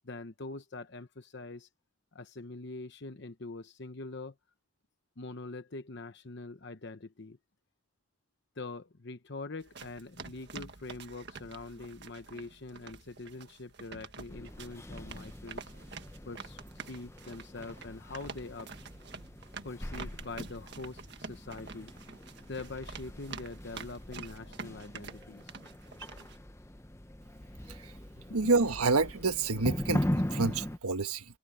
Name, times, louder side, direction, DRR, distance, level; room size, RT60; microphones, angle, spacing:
voice 1, 0.1-1.7 2.1-4.3 5.2-7.4 8.6-15.6 16.2-16.6 16.9-18.7 19.6-21.9 22.5-25.4, left 3 dB, 50° left, 0.9 m, -43 dB
sound 1, 9.6-26.4, right 4 dB, 50° right, 1.7 m, -47 dB
sound 2, 14.3-30.8, left 1 dB, 10° left, 0.8 m, -40 dB
voice 2, 28.3-31.2, right 3 dB, 90° right, 1.5 m, -28 dB
head